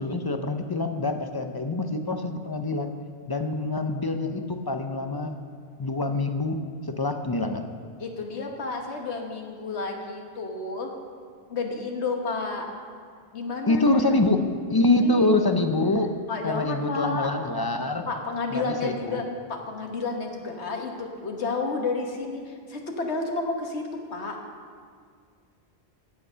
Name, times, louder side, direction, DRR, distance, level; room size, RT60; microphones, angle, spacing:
voice 1, 0.0-2.9 3.3-5.4 5.8-6.6 6.9-7.7 13.7-14.4 14.7-16.1 16.4-18.1 18.5-19.2, left 2 dB, 25° left, 6 dB, 0.6 m, -25 dB
voice 2, 8.0-10.9 11.5-12.6 13.3-14.0 14.4-14.5 15.0-15.4 16.3-17.3 18.1-24.3, left 3 dB, 85° left, 2 dB, 1.6 m, -31 dB
15.0 x 8.3 x 5.6 m, 2.1 s
omnidirectional pair, 1.1 m